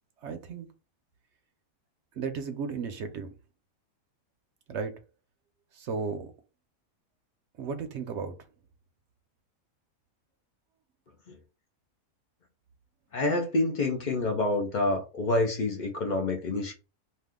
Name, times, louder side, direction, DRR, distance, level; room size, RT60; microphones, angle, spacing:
voice 1, 0.2-0.7 2.2-3.3 4.7-4.9 5.8-6.3 7.6-8.3, right 5 dB, 65° right, 0.8 m, -34 dB
voice 2, 13.1-16.7, left 2 dB, 50° left, 0.5 m, -27 dB
2.7 x 2.3 x 3.5 m
omnidirectional pair, 1.5 m